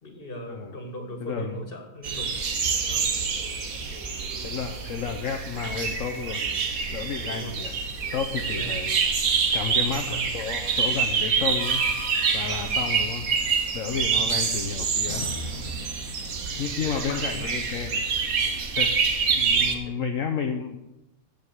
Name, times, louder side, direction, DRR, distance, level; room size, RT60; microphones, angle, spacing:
voice 1, 0.0-2.3 2.9-3.1 7.2-7.6 8.3-8.8 10.1-10.2 12.9-13.0 14.0-14.4 16.5-17.5 19.7-20.0, right 1 dB, 40° left, 4 dB, 2.2 m, -39 dB
voice 2, 1.2-1.6 4.4-6.4 6.9-7.7 8.1-9.0 9.5-11.9 12.3-15.3 16.6-18.1 18.7-19.0 19.3-20.8, left 7 dB, 70° left, 4 dB, 1.2 m, -32 dB
sound 1, 2.0-19.7, right 5 dB, 75° right, 1.7 m, -27 dB
sound 2, 11.6-13.2 15.0-16.6, left 2 dB, 90° left, 1.8 m, -40 dB
15.0 x 5.3 x 8.1 m, 0.93 s
omnidirectional pair, 1.5 m